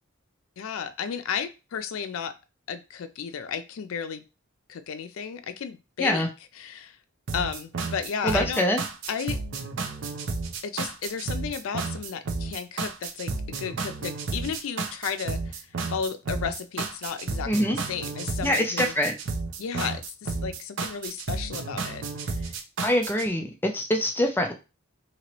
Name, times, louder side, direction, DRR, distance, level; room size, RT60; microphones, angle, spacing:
voice 1, 0.6-2.3 2.7-4.2 4.7-6.3 6.6-7.0 7.3-8.7 9.1-9.4 10.6-15.6 15.9-18.9 19.6-22.5, left 7 dB, 90° left, 10 dB, 0.4 m, -33 dB
sound 1, 7.3-23.3, right 4 dB, 65° right, 0.5 m, -32 dB
voice 2, 8.2-8.8 17.5-17.8 18.4-19.2 22.8-24.5, left 1 dB, 10° left, 3 dB, 0.4 m, -24 dB
3.0 x 2.9 x 2.9 m, 0.29 s
head